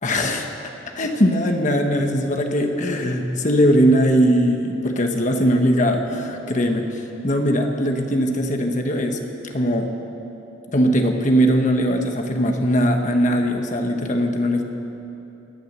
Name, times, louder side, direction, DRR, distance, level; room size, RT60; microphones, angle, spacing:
voice 1, 0.0-0.5 0.9-9.2 9.5-9.9 10.7-14.6, equal, 40° left, 4 dB, 1.3 m, -20 dB
19.0 x 10.5 x 6.8 m, 3.0 s
head